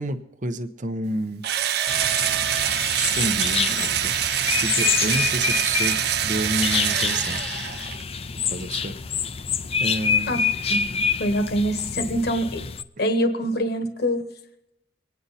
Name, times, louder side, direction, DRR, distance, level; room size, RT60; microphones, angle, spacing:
voice 1, 0.0-1.5 2.9-4.3 4.6-7.4 8.5-8.9 9.8-10.5, right 1 dB, 45° right, 9 dB, 0.9 m, -29 dB
Engine / Drill, 1.4-8.0, right 10 dB, 65° right, 0.5 m, -25 dB
sound 1, 1.9-12.8, left 6 dB, 35° left, 0.5 m, -27 dB
voice 2, 11.2-12.6 13.0-14.2, equal, 65° left, 7 dB, 1.3 m, -24 dB
24.5 x 9.5 x 4.2 m, 0.87 s
head